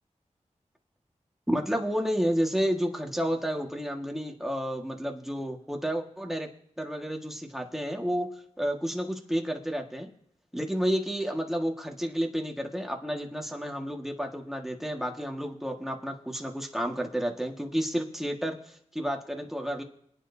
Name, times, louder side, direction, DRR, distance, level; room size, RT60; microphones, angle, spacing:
voice 1, 1.5-6.5 6.8-8.3 8.6-10.1 10.5-19.8, equal, 5° right, 2 dB, 1.7 m, -31 dB
27.5 x 9.4 x 2.8 m, 0.73 s
wide cardioid pair, 90°, 13 cm